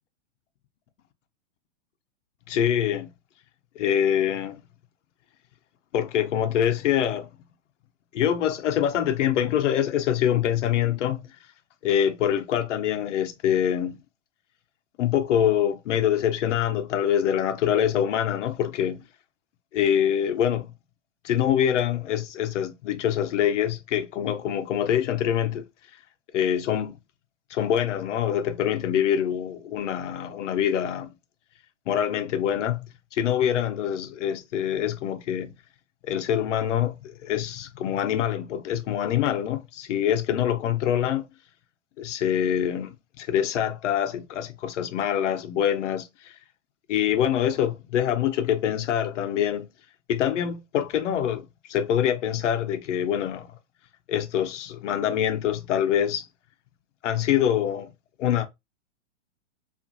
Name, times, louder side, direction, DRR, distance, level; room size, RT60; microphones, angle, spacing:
voice 1, 2.5-3.1 3.8-4.6 5.9-7.3 8.1-11.2 11.8-14.0 15.0-19.1 19.7-20.7 21.2-25.6 26.3-27.0 27.5-31.1 31.9-32.9 33.1-35.5 36.0-41.3 42.0-46.3 46.9-49.7 50.1-53.5 54.1-56.3 57.0-57.9 58.2-58.5, left 9 dB, 80° left, 0.6 m, -25 dB
2.9 x 2.4 x 2.4 m
supercardioid pair, 170°, 36 cm